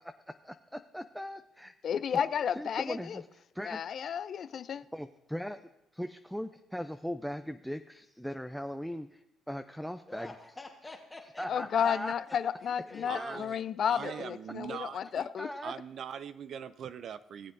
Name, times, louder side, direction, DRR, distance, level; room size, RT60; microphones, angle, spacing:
voice 1, 0.0-1.7 2.1-2.2 2.6-3.2 3.5-3.8 4.9-10.3 11.4-12.1 13.1-13.4 14.0-14.2 15.4-15.7, equal, ahead, 7 dB, 0.4 m, -39 dB
voice 2, 1.8-3.2 3.6-4.8 11.5-15.5, left 8 dB, 55° left, 15 dB, 0.5 m, -32 dB
voice 3, 10.1-11.9 12.3-13.1, left 2 dB, 15° left, -1 dB, 1.3 m, -48 dB
voice 4, 13.1-13.6 13.9-15.3 15.6-17.5, right 8 dB, 60° right, 14 dB, 0.4 m, -42 dB
19.0 x 7.5 x 2.6 m, 0.89 s
supercardioid pair, 75°, 0 cm